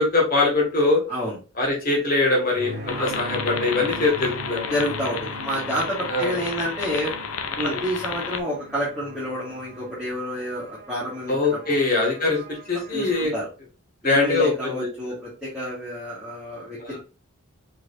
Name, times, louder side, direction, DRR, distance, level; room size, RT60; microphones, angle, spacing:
voice 1, 0.0-1.0 1.6-4.7 6.1-6.4 7.6-7.8 11.3-13.3 14.0-14.9 16.8-17.0, left 3 dB, 40° left, -1 dB, 1.8 m, -22 dB
sound 1, 2.5-13.2, right 1 dB, 40° right, 1.5 m, -40 dB
sound 2, 2.9-8.4, left 6 dB, 75° left, 0.6 m, -32 dB
voice 2, 4.7-7.2 7.6-11.6 12.9-13.5 14.0-17.0, equal, 5° right, -10 dB, 1.8 m, -29 dB
4.8 x 4.1 x 2.6 m, 0.33 s
head